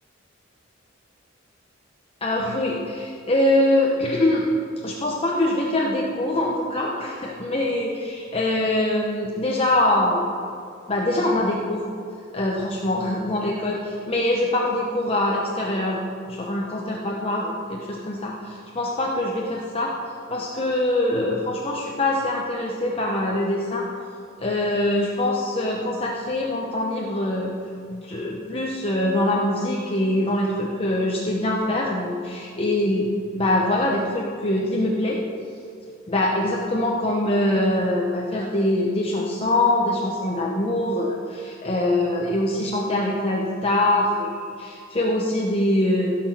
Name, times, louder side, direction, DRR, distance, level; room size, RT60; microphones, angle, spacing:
voice 1, 2.2-4.4 4.8-10.3 10.9-11.8 12.3-19.9 20.3-23.8 24.4-27.5 27.9-35.2 36.1-46.1, left 1 dB, 30° left, -2 dB, 1.0 m, -23 dB
16.0 x 6.2 x 6.1 m, 2.4 s
head